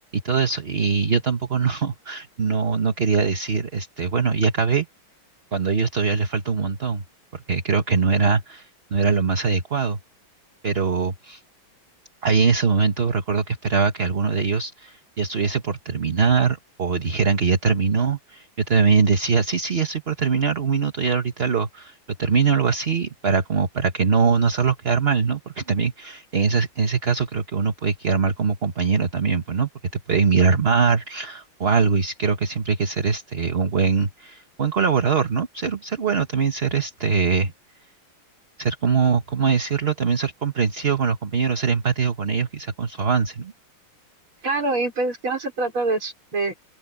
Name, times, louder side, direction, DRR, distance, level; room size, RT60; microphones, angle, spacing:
voice 1, 0.0-4.9 5.5-7.0 7.3-10.0 10.6-11.4 12.2-29.7 30.1-37.5 38.6-43.5, right 5 dB, 35° right, 1.4 m, -22 dB
voice 2, 44.4-46.6, right 3 dB, 75° right, 6.4 m, -25 dB
open air
omnidirectional pair, 2.3 m